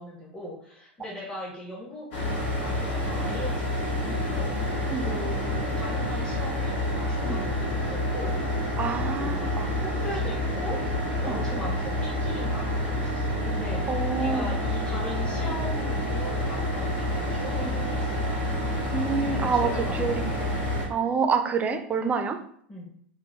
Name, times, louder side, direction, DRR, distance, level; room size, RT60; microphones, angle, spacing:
voice 1, 0.0-2.1 2.6-6.8 7.1-8.4 9.2-9.5 9.8-10.8 11.2-18.4 19.2-20.4 22.7-22.9, equal, 15° left, -5 dB, 1.1 m, -39 dB
sound 1, 2.1-20.9, left 1 dB, 60° left, 1.5 m, -28 dB
voice 2, 8.8-9.7 11.3-11.4 13.9-14.5 17.6-17.8 18.9-20.5 20.9-22.4, right 5 dB, 25° right, 7 dB, 0.5 m, -27 dB
4.8 x 2.2 x 3.4 m, 0.63 s
hypercardioid pair, 90°, 6 cm